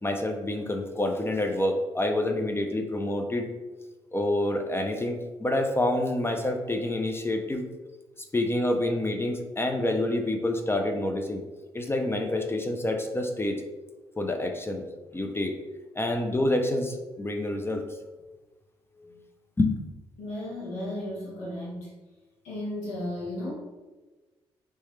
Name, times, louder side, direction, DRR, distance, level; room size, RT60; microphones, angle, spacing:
voice 1, 0.0-3.5 4.1-7.6 8.3-11.4 11.7-13.6 14.2-14.8 15.1-15.6 16.0-17.9 19.0-19.1 19.6-19.8, left 1 dB, 20° left, 4 dB, 0.5 m, -27 dB
voice 2, 20.2-21.9 22.4-23.5, left 1 dB, 80° left, -5 dB, 1.3 m, -34 dB
3.2 x 3.1 x 3.1 m, 1.2 s
hypercardioid pair, 50°, 12 cm